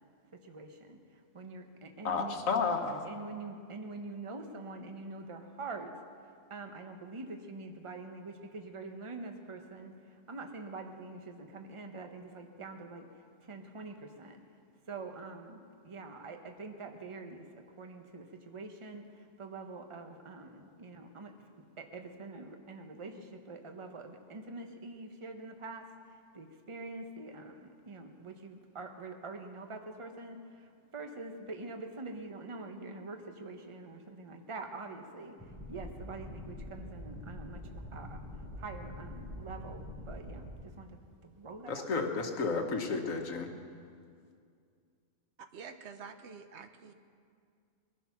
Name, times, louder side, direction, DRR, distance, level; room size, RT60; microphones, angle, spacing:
voice 1, 0.4-2.4 3.0-5.9 6.5-13.1 13.4-14.4 14.9-21.3 21.8-35.4 35.7-41.0 41.2-41.9, right 3 dB, 25° right, 5 dB, 1.0 m, -45 dB
voice 2, 2.0-3.0 41.7-43.5, left 4 dB, 85° left, 4 dB, 1.7 m, -32 dB
sound 1, 35.4-40.5, left 1 dB, 5° right, 5.6 m, -45 dB
voice 3, 45.4-46.9, right 5 dB, 60° right, 8 dB, 1.1 m, -48 dB
21.5 x 11.5 x 6.0 m, 2.3 s
omnidirectional pair, 1.4 m